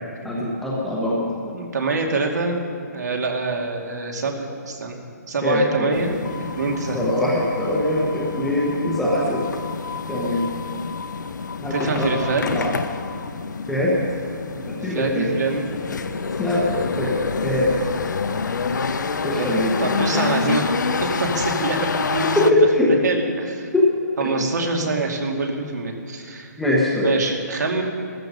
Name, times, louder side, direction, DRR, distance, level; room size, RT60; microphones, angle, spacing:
voice 1, 0.2-1.3 5.4-5.9 6.9-9.5 10.1-10.4 11.6-12.1 12.5-12.7 13.7-13.9 14.7-15.3 16.4-17.1 17.4-17.7 19.2-19.8 22.4-22.9 23.7-23.9 24.2-24.3 26.6-27.1, left 1 dB, ahead, -6 dB, 0.9 m, -22 dB
voice 2, 1.4-2.6 2.9-6.1 6.6-7.1 11.7-12.4 14.8-15.7 19.3-19.5 19.8-22.5 22.8-23.7 24.2-26.5 27.0-27.8, right 3 dB, 70° right, 1 dB, 2.4 m, -25 dB
sound 1, 5.9-22.5, left 5 dB, 85° left, 0.8 m, -27 dB
14.5 x 14.0 x 5.4 m, 2.3 s
hypercardioid pair, 180°, 10 cm